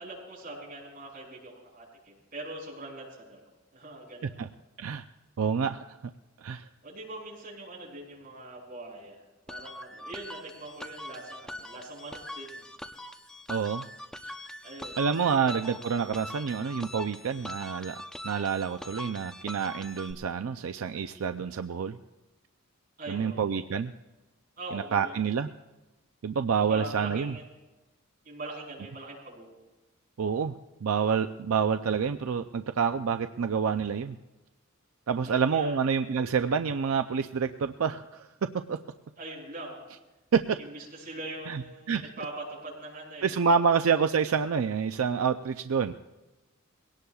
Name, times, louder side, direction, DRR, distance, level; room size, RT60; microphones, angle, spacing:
voice 1, 0.0-4.5 6.8-12.6 14.6-15.1 15.4-15.6 23.0-23.6 24.6-25.4 26.7-27.4 28.2-29.6 35.2-35.8 39.2-39.8 40.6-43.4, right 2 dB, 45° right, -3 dB, 6.2 m, -42 dB
voice 2, 5.4-5.8 6.4-6.7 13.5-13.9 14.2-14.3 15.0-18.0 18.2-22.0 23.1-23.9 24.7-25.5 26.2-27.3 30.2-30.5 30.8-34.2 35.1-38.8 40.3-40.6 41.5-41.6 41.9-42.0 43.2-45.9, right 6 dB, 85° right, 8 dB, 0.5 m, -28 dB
sound 1, 9.5-20.1, left 1 dB, 5° left, 0.7 m, -42 dB
22.5 x 18.0 x 2.4 m, 1.1 s
head